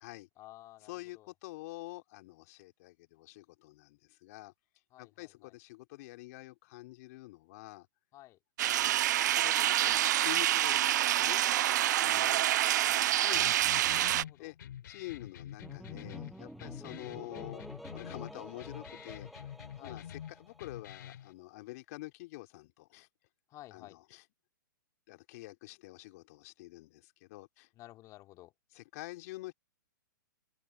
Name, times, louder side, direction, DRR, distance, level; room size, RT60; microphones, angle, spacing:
voice 1, 0.4-1.3 4.9-5.5 8.1-8.4 11.8-11.9 12.4-13.2 14.1-14.5 19.8-20.0 23.5-24.0 27.7-28.5, left 16 dB, 30° left, 2.9 m, -54 dB
voice 2, 0.9-4.5 5.0-7.9 8.6-11.4 12.0-12.5 13.2-13.8 14.4-14.6 14.9-17.7 17.9-19.5 19.8-23.1 23.7-24.2 25.1-27.7 28.7-29.5, left 20 dB, 45° left, 3.1 m, -47 dB
sound 1, 8.6-14.2, right 13 dB, 60° right, 0.4 m, -27 dB
sound 2, 13.3-21.3, left 10 dB, 65° left, 3.4 m, -47 dB
sound 3, 15.6-21.1, equal, ahead, 7.3 m, -49 dB
open air
hypercardioid pair, 130°, 11 cm